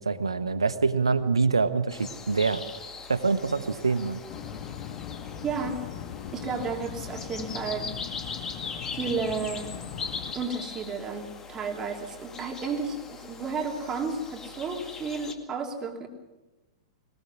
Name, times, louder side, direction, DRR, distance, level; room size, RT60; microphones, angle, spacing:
voice 1, 0.0-2.6 3.1-4.2, right 4 dB, 75° right, 12 dB, 1.3 m, -25 dB
sound 1, 1.9-15.3, left 5 dB, 20° left, 2.2 m, -41 dB
sound 2, 4.3-10.3, left 9 dB, 40° left, 1.5 m, -40 dB
voice 2, 5.4-5.8 6.3-7.9 8.9-9.7 10.3-16.1, right 4 dB, 20° right, 3 dB, 3.1 m, -32 dB
21.5 x 21.0 x 6.3 m, 1.1 s
figure-of-eight pair, 100°, 3 cm